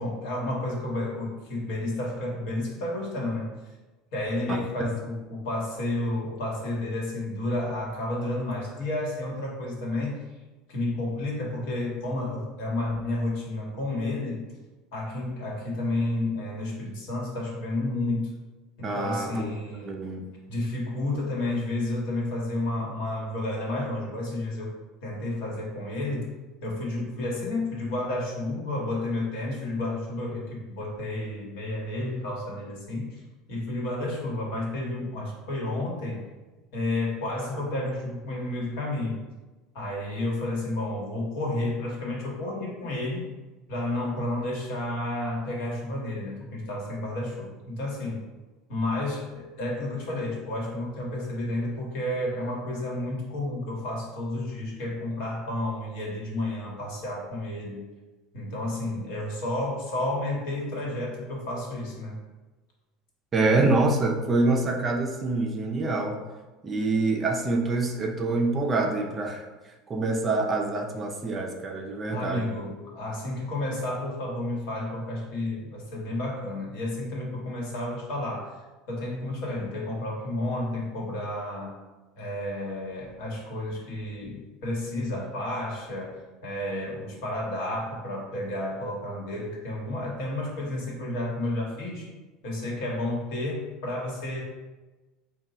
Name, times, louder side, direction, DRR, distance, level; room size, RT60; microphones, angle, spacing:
voice 1, 0.0-3.5 4.1-10.2 10.7-14.4 14.9-18.3 18.8-20.0 20.5-24.8 25.0-26.3 26.6-33.2 33.5-36.2 36.7-39.2 39.7-43.3 43.7-48.2 48.7-57.9 58.3-62.1 72.1-81.7 82.2-92.1 92.4-94.4, left 1 dB, 70° left, -2 dB, 1.2 m, -31 dB
voice 2, 18.8-19.5 19.8-20.3 63.3-66.2 66.6-69.4 69.9-72.5, right 3 dB, 25° right, 1 dB, 0.4 m, -26 dB
3.8 x 2.2 x 4.2 m, 1.2 s
supercardioid pair, 145°, 0 cm